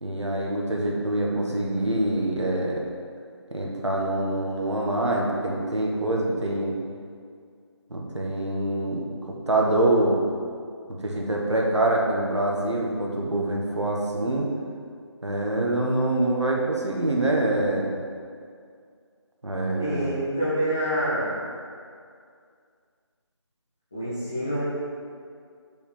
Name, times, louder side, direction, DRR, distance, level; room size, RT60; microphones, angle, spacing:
voice 1, 0.0-2.8 3.5-6.8 7.9-10.2 10.9-14.5 15.2-17.9 19.4-20.0, right 1 dB, 75° right, -2 dB, 1.6 m, -25 dB
voice 2, 19.8-21.4 23.9-24.6, equal, 5° left, -13 dB, 0.5 m, -27 dB
5.6 x 4.9 x 5.8 m, 2.2 s
figure-of-eight pair, 165°, 15 cm